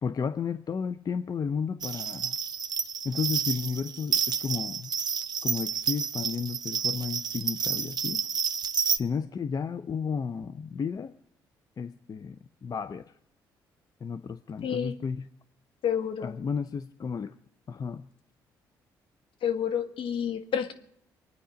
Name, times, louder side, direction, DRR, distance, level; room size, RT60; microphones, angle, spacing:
voice 1, 0.0-2.4 3.0-4.9 5.4-8.3 8.9-11.2 11.8-13.0 14.0-15.3 16.2-17.4 17.7-18.1, left 6 dB, 40° left, 12 dB, 0.6 m, -33 dB
sound 1, 1.8-9.0, right 6 dB, 45° right, 0.9 m, -30 dB
voice 2, 14.6-14.9 15.8-16.4 19.4-20.7, left 8 dB, 65° left, 7 dB, 1.5 m, -29 dB
24.0 x 9.6 x 5.1 m, 0.72 s
hypercardioid pair, 55°, 10 cm